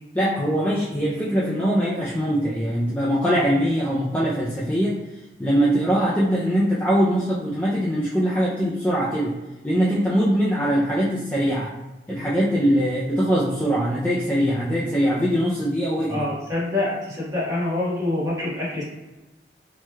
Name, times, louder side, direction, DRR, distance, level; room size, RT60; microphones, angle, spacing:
voice 1, 0.2-5.0 5.4-9.4 9.6-11.7 12.1-16.2, equal, 10° left, -7 dB, 0.3 m, -22 dB
voice 2, 16.1-18.8, left 2 dB, 20° right, -9 dB, 1.3 m, -26 dB
3.1 x 3.1 x 2.2 m, 1.1 s
head